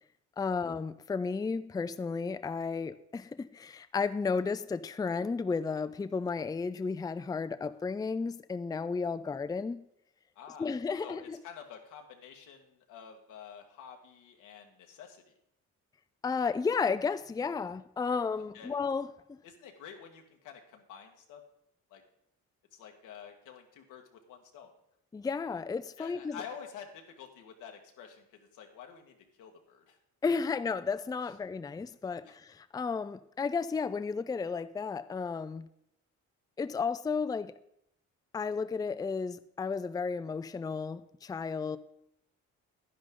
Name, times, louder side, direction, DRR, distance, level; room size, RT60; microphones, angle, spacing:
voice 1, 0.4-9.9 10.6-11.4 16.2-19.4 25.1-26.4 30.2-35.7 36.6-37.5 38.3-41.8, left 5 dB, 15° left, 0.4 m, -33 dB
voice 2, 10.3-10.7 11.0-15.4 18.4-18.8 19.4-21.4 21.9-22.0 22.7-24.7 26.0-30.0 31.2-31.3 32.2-32.4, left 7 dB, 90° left, 1.6 m, -49 dB
11.0 x 10.0 x 3.8 m
cardioid pair, 90°, 30 cm